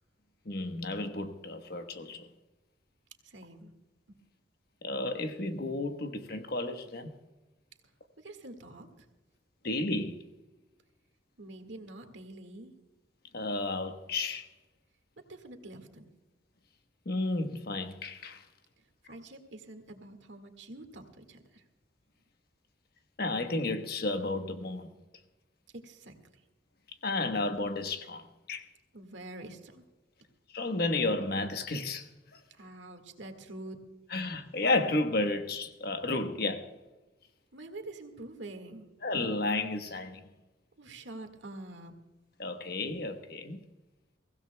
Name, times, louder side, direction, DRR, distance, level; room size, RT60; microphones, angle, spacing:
voice 1, 0.4-2.3 4.8-7.1 9.6-10.2 13.3-14.5 17.0-18.4 23.2-24.9 27.0-28.7 30.5-32.4 34.1-36.7 39.0-40.2 42.4-43.6, left 2 dB, 55° left, 1.2 m, -32 dB
voice 2, 3.2-3.7 4.1-4.2 8.2-9.1 11.4-12.7 15.2-16.1 18.8-21.6 25.7-26.1 28.9-29.8 32.5-33.8 37.5-38.9 40.8-41.9, right 2 dB, 70° right, 1.8 m, -46 dB
23.0 x 16.0 x 2.3 m
head